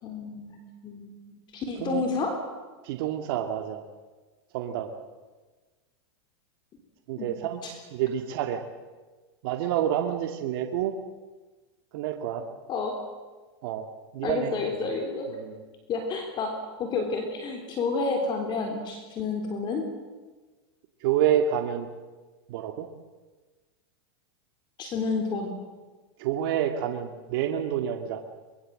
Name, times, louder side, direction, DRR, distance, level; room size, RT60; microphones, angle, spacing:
voice 1, 0.0-2.3 7.2-7.3 7.6-7.7 12.7-12.9 14.2-15.3 15.9-16.5 16.8-19.8 24.8-25.5, left 4 dB, 35° left, 4 dB, 3.7 m, -30 dB
voice 2, 1.8-2.1 2.8-3.8 4.5-4.9 7.1-7.6 7.9-8.6 9.4-10.9 11.9-12.5 13.6-13.9 14.1-14.9 15.3-15.6 21.0-21.9 22.5-22.9 26.2-28.2, right 10 dB, 60° right, 4 dB, 2.1 m, -28 dB
24.0 x 22.5 x 7.7 m, 1.3 s
supercardioid pair, 135°, 14 cm